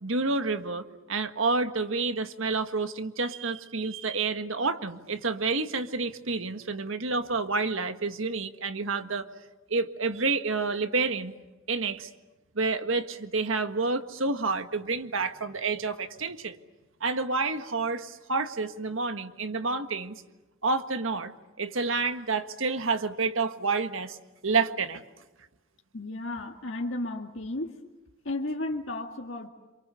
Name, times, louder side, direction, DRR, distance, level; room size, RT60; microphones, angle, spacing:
voice 1, 0.0-9.3 9.7-11.3 11.7-12.1 12.6-16.6 17.0-20.2 20.6-24.2 24.4-25.0, right 4 dB, 70° right, 9 dB, 1.6 m, -29 dB
voice 2, 25.9-27.7 28.2-29.5, left 2 dB, 65° left, 1 dB, 2.1 m, -33 dB
28.0 x 27.0 x 6.9 m, 1.1 s
head